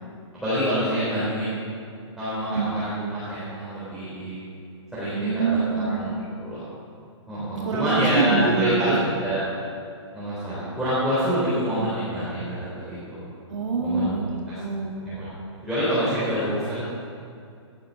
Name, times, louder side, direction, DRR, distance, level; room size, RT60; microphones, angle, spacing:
voice 1, 0.3-1.6 2.2-4.4 4.9-6.7 7.3-9.4 10.1-13.2 13.8-14.2 14.5-14.6 15.0-15.3 15.6-16.8, equal, ahead, -13 dB, 3.9 m, -26 dB
voice 2, 5.1-6.0 7.5-9.0 11.8-11.9 13.5-15.0, right 4 dB, 80° right, -1 dB, 2.1 m, -25 dB
17.5 x 11.0 x 4.3 m, 2.4 s
hypercardioid pair, 160°, 16 cm